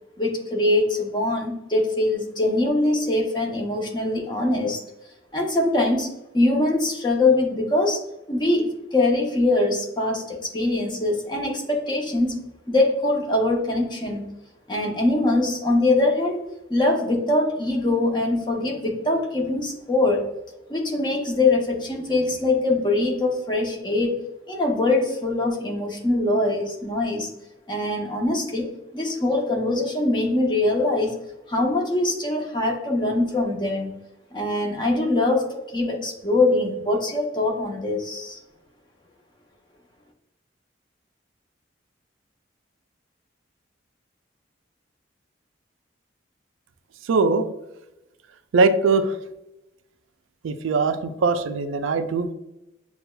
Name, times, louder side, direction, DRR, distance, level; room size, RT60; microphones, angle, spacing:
voice 1, 0.2-4.8 5.3-8.0 8.3-14.3 14.7-20.3 20.7-24.1 24.5-27.3 27.7-31.2 31.5-34.0 34.3-38.4, left 2 dB, 25° left, 0 dB, 0.7 m, -23 dB
voice 2, 47.0-47.5 48.5-49.2 50.4-52.3, right 4 dB, 85° right, 9 dB, 0.4 m, -21 dB
6.7 x 2.3 x 2.2 m, 0.94 s
head